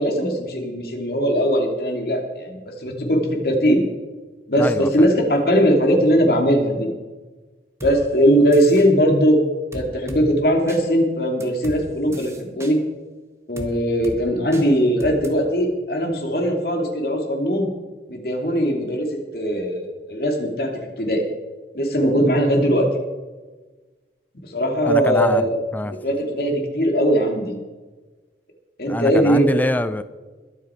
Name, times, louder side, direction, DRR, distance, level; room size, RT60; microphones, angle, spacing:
voice 1, 0.0-3.8 4.5-6.9 7.8-9.4 9.7-12.8 13.5-17.7 18.1-19.1 19.3-20.7 21.0-21.2 21.7-22.9 24.3-25.6 25.8-27.5 28.8-29.6, equal, 55° left, 2 dB, 2.5 m, -20 dB
voice 2, 4.6-4.9 24.9-25.5 25.7-26.0 28.8-30.0, left 1 dB, 10° left, 13 dB, 0.4 m, -24 dB
sound 1, 7.8-7.9 8.5-8.9 9.7-10.2 10.7-10.8 11.4-11.8 12.1-12.7 13.6-13.7 14.0-14.2 14.5-14.7 15.0-15.3, equal, 15° right, 1.4 m, -35 dB
21.5 x 8.4 x 4.5 m, 1.3 s
head